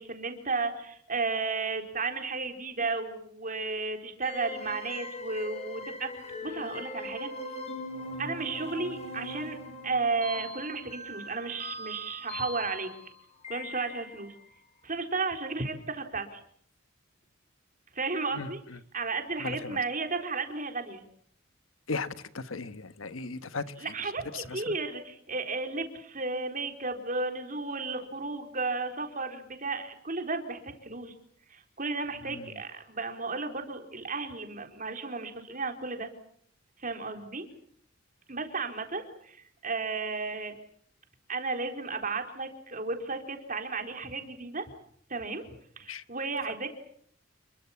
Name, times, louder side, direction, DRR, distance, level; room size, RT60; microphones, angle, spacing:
voice 1, 0.0-6.1 6.4-7.3 8.2-9.6 9.8-12.9 13.5-14.3 14.8-16.4 17.9-18.6 18.9-21.0 23.8-31.1 31.5-36.1 36.8-37.5 38.3-40.6 41.3-44.7 45.1-45.4 45.8-46.7, right 3 dB, 40° right, 4.1 m, -33 dB
sound 1, 4.2-14.4, left 2 dB, 30° left, 6.9 m, -41 dB
voice 2, 18.3-18.8 19.4-19.8 21.9-23.9 24.3-24.8 32.2-32.5 45.9-46.0, left 4 dB, 85° left, 1.3 m, -37 dB
29.0 x 22.5 x 7.2 m
head